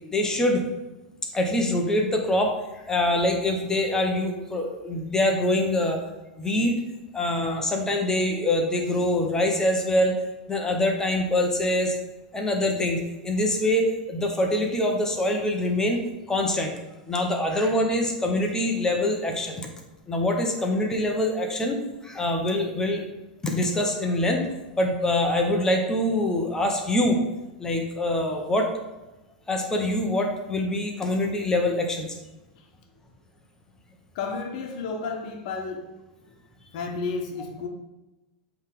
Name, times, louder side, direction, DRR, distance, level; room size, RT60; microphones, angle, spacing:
voice 1, 0.1-0.6 1.3-6.0 6.4-6.7 7.1-10.1 10.5-11.9 12.3-16.0 16.3-16.7 17.0-19.6 20.1-23.0 23.4-24.5 24.8-27.2 27.6-28.7 29.5-32.2, left 1 dB, 15° left, 2 dB, 1.2 m, -24 dB
voice 2, 34.1-35.9 36.7-37.7, left 4 dB, 65° left, 4 dB, 1.1 m, -32 dB
7.9 x 3.5 x 3.9 m, 1.0 s
hypercardioid pair, 115°, 4 cm